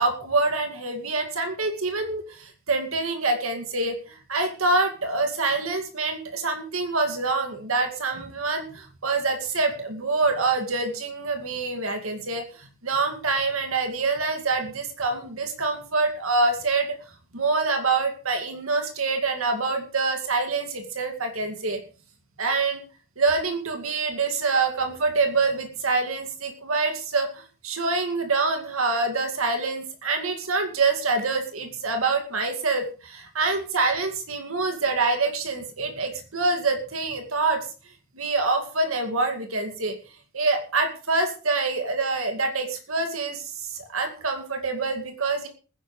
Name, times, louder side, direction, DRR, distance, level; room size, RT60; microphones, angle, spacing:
voice 1, 0.0-4.0 4.3-12.4 12.8-17.0 17.3-21.8 22.4-22.8 23.2-27.3 27.6-37.6 38.2-40.0 40.3-43.4 43.7-45.5, right 3 dB, 80° right, 5 dB, 2.2 m, -26 dB
20.5 x 10.5 x 3.2 m, 0.36 s
head